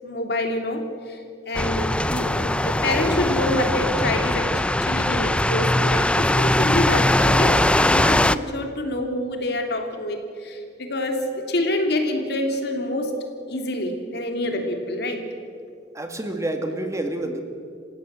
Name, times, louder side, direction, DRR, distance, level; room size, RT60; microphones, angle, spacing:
voice 1, 0.0-4.5 4.8-13.1 13.5-15.2, left 1 dB, 65° left, 4 dB, 3.0 m, -26 dB
sound 1, 1.5-8.4, left 1 dB, 5° left, 0.4 m, -21 dB
voice 2, 15.9-17.4, right 1 dB, 15° right, 5 dB, 1.9 m, -28 dB
27.5 x 16.0 x 7.5 m, 2.3 s
head